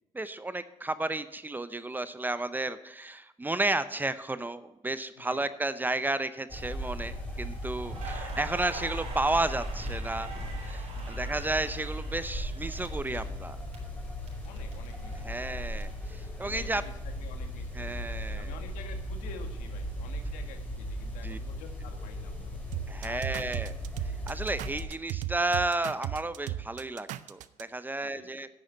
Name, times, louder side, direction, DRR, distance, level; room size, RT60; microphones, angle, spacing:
voice 1, 0.1-10.3 10.6-13.6 15.2-16.8 17.8-18.5 21.2-21.4 22.9-23.8 24.3-28.5, right 2 dB, 15° right, 13 dB, 0.6 m, -32 dB
sound 1, 6.5-24.8, equal, 10° left, 3.5 m, -37 dB
Crackle, 7.9-13.8 14.0-15.8, right 4 dB, 55° right, 4.7 m, -45 dB
voice 2, 8.1-8.4 10.9-11.2 14.4-15.8 16.4-22.6 23.0-23.8 28.0-28.4, left 6 dB, 85° left, 6 dB, 1.6 m, -50 dB
sound 2, 22.7-27.6, right 13 dB, 75° right, 0.5 m, -36 dB
9.8 x 6.4 x 7.7 m, 0.91 s
supercardioid pair, 85°, 13 cm